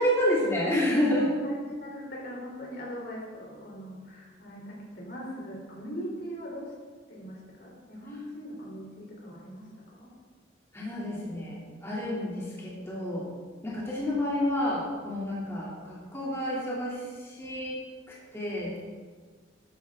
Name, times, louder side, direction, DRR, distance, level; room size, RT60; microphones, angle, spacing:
voice 1, 0.0-1.3 10.7-13.3 13.6-17.8 18.1-18.8, left 1 dB, 15° left, -7 dB, 2.8 m, -29 dB
voice 2, 1.1-6.7 7.1-9.7 10.0-10.1, equal, 60° left, -3 dB, 3.6 m, -40 dB
13.0 x 11.0 x 3.7 m, 1.5 s
head